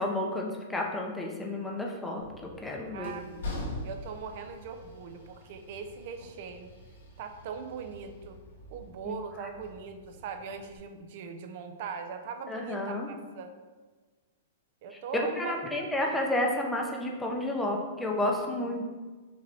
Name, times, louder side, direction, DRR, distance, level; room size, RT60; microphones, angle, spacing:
voice 1, 0.0-3.1 9.0-9.1 12.5-13.1 14.9-15.0 15.4-18.8, left 1 dB, 5° left, 0 dB, 0.6 m, -31 dB
Train, 2.2-10.8, left 1 dB, 90° left, 1.3 m, -44 dB
voice 2, 2.9-6.7 7.2-8.4 8.7-13.5 14.8-16.2, right 6 dB, 50° right, 7 dB, 0.4 m, -40 dB
5.2 x 3.1 x 2.7 m, 1.4 s
hypercardioid pair, 150°, 0 cm